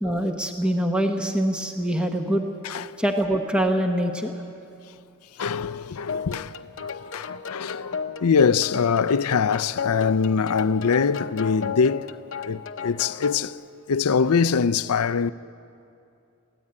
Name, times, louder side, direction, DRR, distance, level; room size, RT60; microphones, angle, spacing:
voice 1, 0.0-2.4 3.0-4.3, right 1 dB, 5° right, 1.0 m, -24 dB
voice 2, 5.4-6.5 6.8-13.6 13.9-15.3, left 5 dB, 85° left, 0.5 m, -23 dB
sound 1, 6.1-13.5, left 6 dB, 55° left, 0.8 m, -34 dB
23.5 x 16.0 x 8.7 m
head